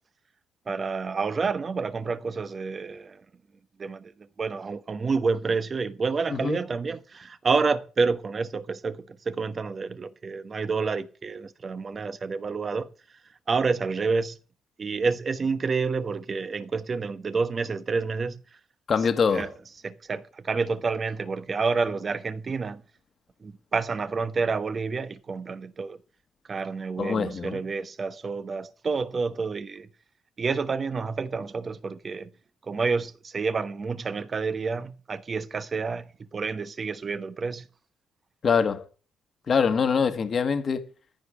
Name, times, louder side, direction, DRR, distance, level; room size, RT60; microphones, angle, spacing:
voice 1, 0.7-3.2 3.8-12.9 13.5-14.4 14.8-18.4 19.3-19.5 19.8-22.8 23.4-26.0 26.5-29.9 30.4-32.3 32.6-37.7, right 4 dB, 40° right, 1.1 m, -29 dB
voice 2, 18.9-19.5 27.0-27.6 38.4-38.9 39.5-40.8, left 6 dB, 45° left, 1.5 m, -24 dB
14.5 x 5.2 x 8.6 m
cardioid pair, 90°, 0 cm